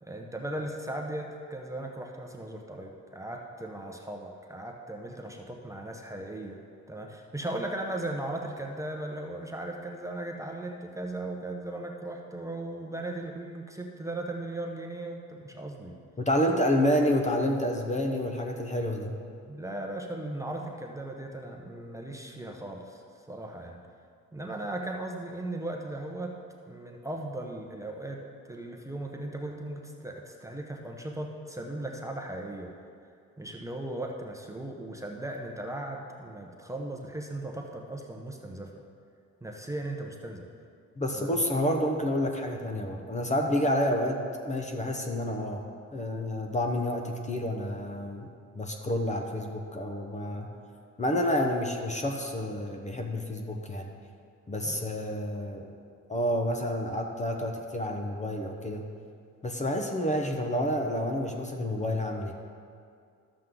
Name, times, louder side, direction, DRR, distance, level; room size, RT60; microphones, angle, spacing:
voice 1, 0.0-6.6 6.9-16.0 16.6-16.7 19.5-23.0 23.3-23.8 24.3-26.3 26.7-28.2 28.4-32.7 33.4-38.7 39.4-40.5 41.1-41.4 54.6-54.9, right 1 dB, 10° right, 1 dB, 0.9 m, -37 dB
voice 2, 16.2-19.1 41.0-45.6 45.9-48.3 48.5-50.5 51.0-53.9 54.5-55.7 56.1-58.8 59.4-62.3, left 1 dB, 25° left, 2 dB, 1.0 m, -29 dB
12.5 x 7.5 x 3.8 m, 2.3 s
cardioid pair, 90°, 30 cm